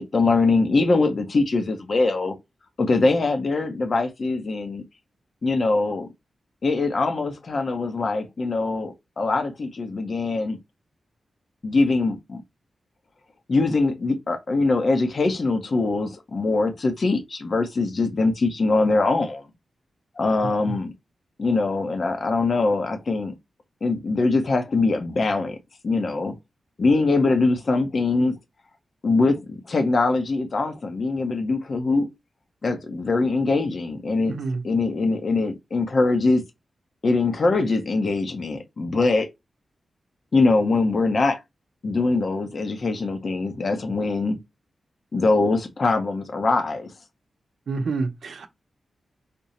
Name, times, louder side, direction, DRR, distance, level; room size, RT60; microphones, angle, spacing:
voice 1, 0.0-2.4 2.8-4.8 5.4-6.1 6.6-10.6 11.6-12.4 13.5-19.4 20.2-20.9 21.4-23.3 23.8-25.6 25.8-26.3 26.8-28.3 29.0-32.1 32.6-34.4 34.6-36.4 37.0-39.3 40.3-41.4 41.8-44.4 45.1-46.9, left 3 dB, 50° left, 0.7 m, -22 dB
voice 2, 34.3-34.6 47.7-48.5, right 4 dB, 75° right, 0.6 m, -28 dB
5.1 x 2.0 x 2.7 m
wide cardioid pair, 95°, 0 cm